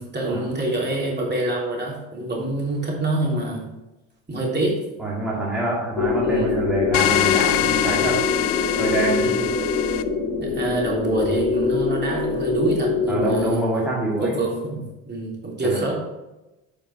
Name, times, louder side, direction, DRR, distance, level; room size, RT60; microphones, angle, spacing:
voice 1, 0.0-3.7 4.3-4.8 6.2-6.5 9.2-9.5 10.4-13.6 14.2-16.0, right 2 dB, 25° right, -3 dB, 3.3 m, -26 dB
voice 2, 5.0-8.3 8.8-9.3 13.1-14.4 15.6-15.8, right 2 dB, ahead, -6 dB, 2.4 m, -25 dB
sound 1, 6.0-13.5, left 4 dB, 45° left, 2.2 m, -24 dB
sound 2, 6.9-10.0, left 14 dB, 85° left, 0.6 m, -23 dB
9.1 x 5.3 x 4.9 m, 1.0 s
hypercardioid pair, 65°, 45 cm